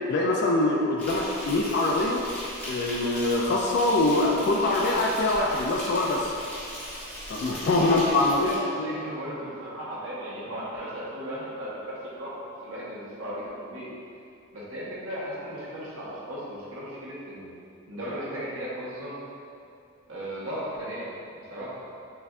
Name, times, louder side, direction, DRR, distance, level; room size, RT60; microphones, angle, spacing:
voice 1, 0.1-2.2 2.7-6.3 7.3-8.5 8.8-8.9, left 2 dB, 50° left, -1 dB, 0.3 m, -24 dB
Insect, 1.0-8.6, equal, 10° left, 1.2 m, -38 dB
voice 2, 7.7-13.9 14.5-17.5 17.9-19.2 20.1-21.8, equal, 65° right, -7 dB, 1.0 m, -36 dB
6.5 x 2.5 x 2.3 m, 2.6 s
head